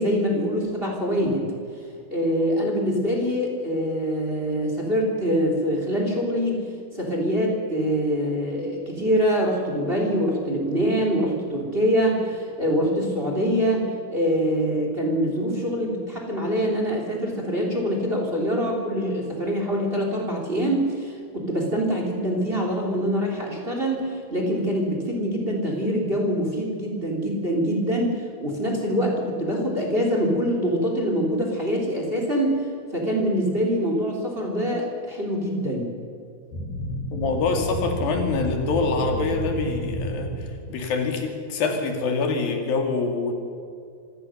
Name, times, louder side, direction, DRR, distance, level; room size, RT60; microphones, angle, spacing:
voice 1, 0.0-1.5 2.1-6.6 6.9-35.9, equal, 15° right, 1 dB, 3.5 m, -24 dB
sound 1, 36.5-40.8, equal, 75° left, 4.6 m, -31 dB
voice 2, 37.1-43.3, left 4 dB, 90° left, 3 dB, 4.3 m, -25 dB
25.5 x 17.5 x 6.6 m, 2.4 s
omnidirectional pair, 4.0 m